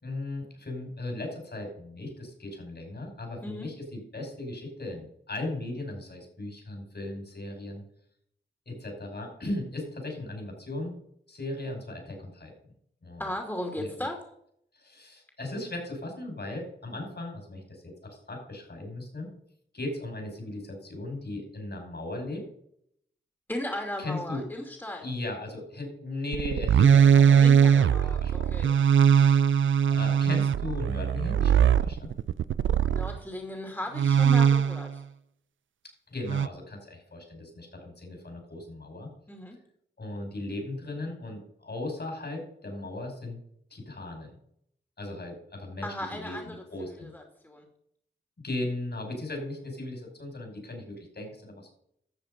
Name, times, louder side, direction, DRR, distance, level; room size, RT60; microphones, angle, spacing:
voice 1, 0.0-7.8 8.7-10.9 11.3-12.5 13.0-13.2 13.8-13.9 14.7-19.3 19.7-22.4 24.0-24.4 25.0-27.4 27.7-32.1 36.1-39.1 40.0-43.4 43.7-44.3 45.0-47.1 48.4-51.7, left 2 dB, 55° left, 2 dB, 5.5 m, -37 dB
voice 2, 13.2-14.3 23.5-25.1 27.4-28.7 32.9-35.0 39.3-39.6 45.8-46.6 47.0-47.7, left 1 dB, 10° left, 2 dB, 2.6 m, -36 dB
sound 1, 26.3-33.2 34.0-35.0 36.3-36.5, right 8 dB, 80° right, 0.4 m, -21 dB
12.5 x 7.1 x 5.3 m, 0.70 s
cardioid pair, 40°, 20 cm